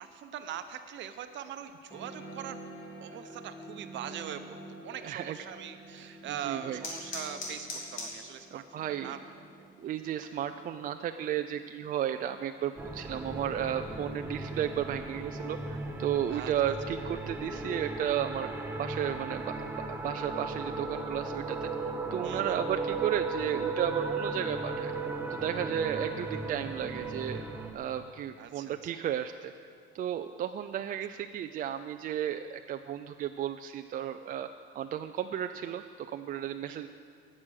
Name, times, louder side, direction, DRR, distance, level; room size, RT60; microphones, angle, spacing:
voice 1, 0.0-2.6 3.0-4.6 4.8-9.2 9.5-9.6 16.3-16.5 22.2-22.6 28.4-29.0 36.7-36.9, right 9 dB, 65° right, 9 dB, 0.9 m, -42 dB
sound 1, 1.9-12.9, right 1 dB, 15° left, 3.5 m, -49 dB
voice 2, 5.0-5.4 6.4-6.8 8.5-9.2 9.8-18.5 18.8-21.7 22.1-24.9 25.3-27.4 27.7-29.5 29.9-34.5 34.7-36.9, right 10 dB, 45° right, 7 dB, 0.4 m, -34 dB
sound 2, 5.8-16.9, left 2 dB, 70° left, 3.4 m, -48 dB
sound 3, 12.8-27.7, right 3 dB, 10° right, 1.0 m, -36 dB
18.5 x 7.5 x 6.4 m, 2.1 s
cardioid pair, 160°, 20 cm